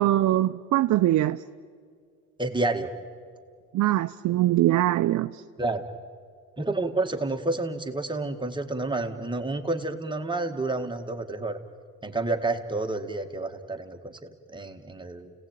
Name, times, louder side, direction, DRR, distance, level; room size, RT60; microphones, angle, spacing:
voice 1, 0.0-1.4 3.7-5.4, right 14 dB, 70° right, 0.6 m, -22 dB
voice 2, 2.4-2.9 5.6-5.8 6.6-11.6 12.0-15.3, right 2 dB, 15° right, 1.9 m, -29 dB
29.5 x 18.0 x 9.2 m
cardioid pair, 90°, 30 cm